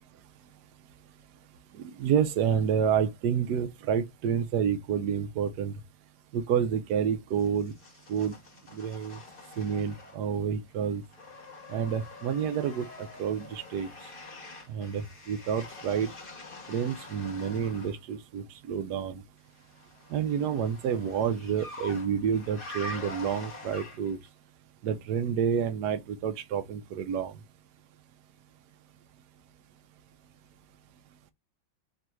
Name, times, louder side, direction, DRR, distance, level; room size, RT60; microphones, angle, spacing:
voice 1, 1.8-5.7 6.3-7.7 8.1-8.3 8.7-9.2 9.6-11.0 11.7-13.9 14.7-16.1 16.7-19.2 20.1-24.2 24.8-27.3, right 8 dB, 70° right, 1.0 m, -29 dB
sound 1, 7.4-10.4 10.7-18.0 19.5-24.3, left 2 dB, 30° left, 1.2 m, -45 dB
3.9 x 2.7 x 4.3 m
omnidirectional pair, 2.2 m